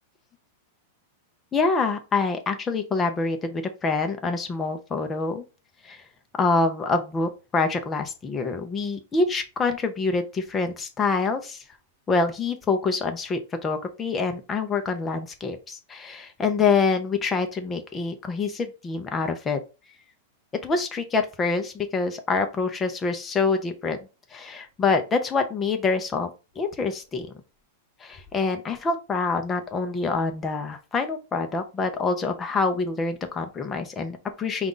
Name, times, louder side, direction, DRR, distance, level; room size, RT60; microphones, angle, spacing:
voice 1, 1.5-5.4 5.8-6.0 6.4-11.6 12.1-19.6 20.6-24.0 24.3-26.3 26.6-27.3 28.0-34.7, left 4 dB, 15° left, 6 dB, 0.6 m, -26 dB
5.1 x 2.4 x 3.8 m, 0.30 s
supercardioid pair, 170°, 0 cm